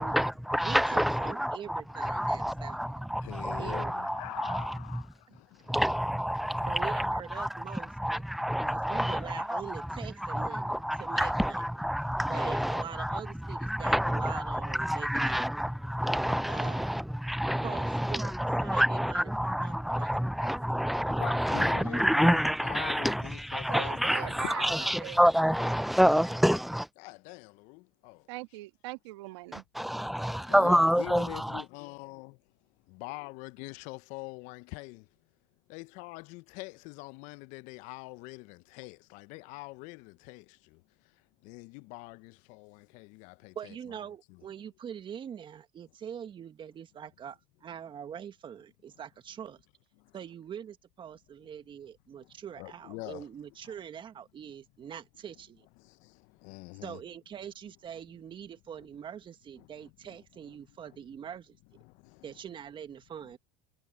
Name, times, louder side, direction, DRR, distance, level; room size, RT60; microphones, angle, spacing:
voice 1, 0.0-5.0 5.7-26.9 29.5-31.6, equal, ahead, 0.6 m, -28 dB
voice 2, 0.6-2.8 3.6-4.1 6.7-8.2 8.7-11.6 12.3-15.5 16.5-16.9 17.6-18.3 18.6-20.1 43.5-49.6 50.1-55.7 56.8-61.6 62.2-63.4, right 8 dB, 35° right, 1.7 m, -43 dB
voice 3, 3.1-5.8 6.5-6.6 21.2-24.8 27.0-28.3 30.1-32.4 32.9-35.1 35.7-44.0 44.3-44.4 50.0-50.1 52.2-53.3 53.6-53.8 54.9-55.0 55.8-57.0 59.6-60.2 60.7-60.8 61.8-62.4, left 25 dB, 60° left, 0.8 m, -44 dB
voice 4, 23.7-25.2 28.3-29.6, right 22 dB, 70° right, 1.9 m, -41 dB
hypercardioid pair, 90°, 15 cm